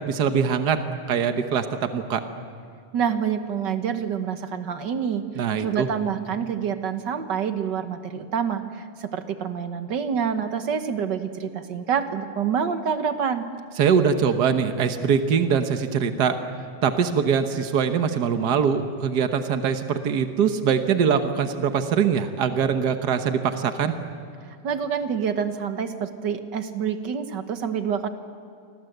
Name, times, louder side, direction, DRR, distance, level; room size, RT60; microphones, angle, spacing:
voice 1, 0.1-0.8 1.1-2.2 5.4-5.9 13.8-16.4 16.8-23.9, right 7 dB, 75° right, 8 dB, 0.9 m, -22 dB
voice 2, 2.9-5.2 5.6-8.6 9.0-13.4 24.6-28.1, right 7 dB, 60° right, 9 dB, 1.1 m, -27 dB
29.0 x 25.0 x 8.0 m, 2.3 s
omnidirectional pair, 3.6 m